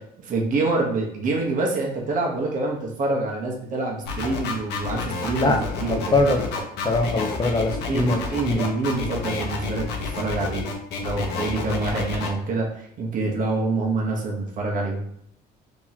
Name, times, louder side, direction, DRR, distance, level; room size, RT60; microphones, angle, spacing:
voice 1, 0.0-6.2 7.9-10.7 11.0-15.0, right 3 dB, 50° right, -1 dB, 1.0 m, -26 dB
sound 1, 4.1-12.3, left 4 dB, 85° left, 0.8 m, -30 dB
voice 2, 5.8-6.5 6.8-8.2 8.5-8.6, left 2 dB, 25° left, 3 dB, 0.7 m, -22 dB
2.9 x 2.9 x 4.0 m, 0.71 s
cardioid pair, 110°, 17 cm